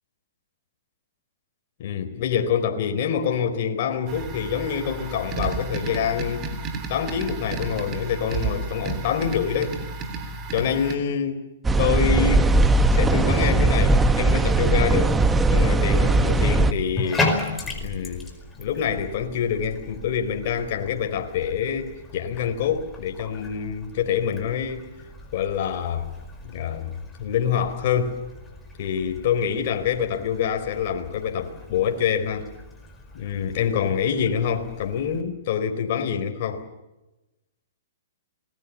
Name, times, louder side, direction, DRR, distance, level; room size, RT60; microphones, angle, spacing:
voice 1, 1.8-6.5 6.9-9.8 10.5-11.4 11.8-12.6 12.9-15.1 15.5-17.3 17.7-18.3 18.6-24.9 25.3-26.1 26.4-26.9 27.2-28.2 28.8-32.5 33.1-36.6, left 8 dB, 50° left, 6 dB, 4.0 m, -26 dB
sound 1, 4.1-11.0, right 3 dB, 30° right, 3.4 m, -32 dB
sound 2, 11.6-16.7, right 2 dB, 10° right, 1.2 m, -19 dB
Bathtub (filling or washing), 16.9-35.2, left 2 dB, 10° left, 4.9 m, -36 dB
27.5 x 20.5 x 7.3 m, 1.0 s
hypercardioid pair, 145°, 0 cm